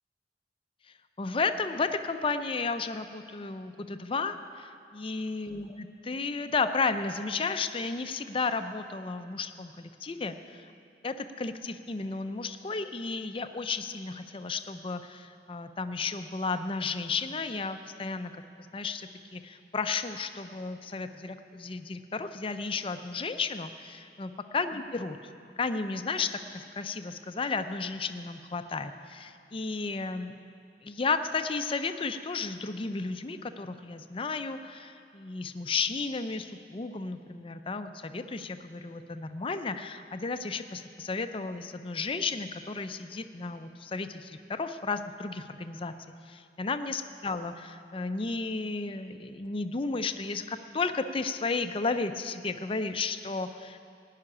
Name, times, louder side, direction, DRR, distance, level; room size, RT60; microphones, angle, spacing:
voice 1, 1.2-10.7 11.0-18.4 18.7-25.2 25.6-30.3 30.8-45.9 46.3-53.8, left 4 dB, 30° left, 9 dB, 0.5 m, -33 dB
16.0 x 5.8 x 9.8 m, 2.5 s
head